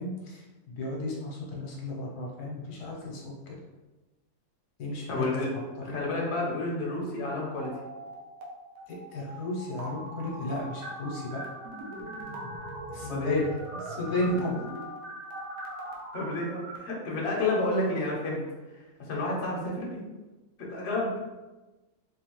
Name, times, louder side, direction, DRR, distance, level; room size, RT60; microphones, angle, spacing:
voice 1, 0.0-3.6 4.8-5.2 5.8-6.0 8.9-11.4 12.9-13.5 13.9-14.6, left 1 dB, 75° left, -2 dB, 1.3 m, -33 dB
voice 2, 5.1-5.5 5.8-7.7 13.0-13.4 16.1-18.4 18.7-18.8 19.1-20.1 20.6-21.1, left 2 dB, 50° left, -3 dB, 1.0 m, -30 dB
sound 1, 7.5-8.5 8.8-16.8, right 1 dB, 90° right, 1.3 m, -41 dB
3.7 x 2.8 x 2.9 m, 1.1 s
omnidirectional pair, 1.7 m